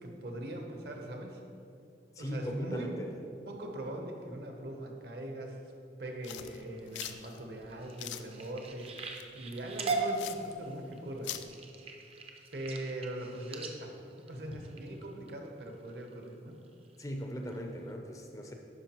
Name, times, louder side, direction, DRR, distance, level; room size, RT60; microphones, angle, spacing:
voice 1, 0.0-1.4 2.2-2.9 3.5-5.6 6.0-11.3 12.5-13.9 14.2-16.6, right 1 dB, 60° right, 2 dB, 0.9 m, -41 dB
voice 2, 2.2-3.1 17.0-18.5, equal, 20° left, 3 dB, 0.4 m, -38 dB
sound 1, 6.2-11.5, left 11 dB, 85° left, 0.3 m, -44 dB
sound 2, 6.6-15.3 15.9-16.2 16.7-17.0 17.5-17.6 17.9-18.0, right 3 dB, 35° right, 0.5 m, -40 dB
11.0 x 4.7 x 3.0 m, 2.6 s
head